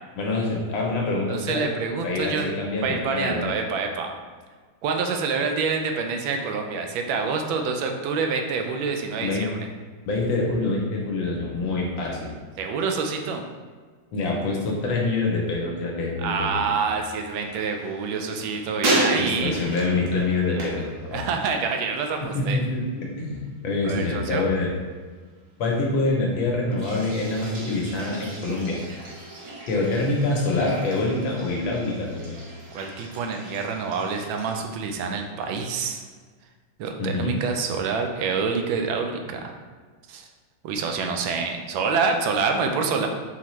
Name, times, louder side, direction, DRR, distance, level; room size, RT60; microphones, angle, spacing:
voice 1, 0.2-1.7 2.0-3.5 9.2-9.5 10.0-12.3 14.1-16.7 19.2-21.2 22.2-24.7 25.6-28.8 29.7-32.3 37.0-37.4, left 2 dB, 75° left, -2 dB, 1.5 m, -26 dB
voice 2, 1.3-2.5 2.8-4.1 4.8-9.5 12.6-13.4 16.2-19.6 20.5-20.6 21.1-22.6 23.8-24.4 32.7-36.0 36.8-39.5 40.1-40.3 40.6-43.1, right 5 dB, 80° right, 4 dB, 1.3 m, -27 dB
sound 1, 17.3-21.7 22.0-22.6 26.7-34.6, right 1 dB, 55° right, 1.0 m, -33 dB
4.3 x 3.9 x 3.0 m, 1.5 s
omnidirectional pair, 2.1 m